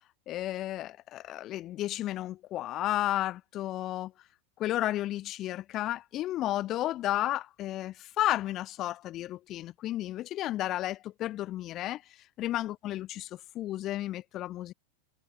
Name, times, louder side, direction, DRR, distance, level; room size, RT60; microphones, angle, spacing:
voice 1, 0.3-4.1 4.6-12.0 12.4-14.7, left 14 dB, 35° left, 7.9 m, -32 dB
figure-of-eight pair, 90°, 0 cm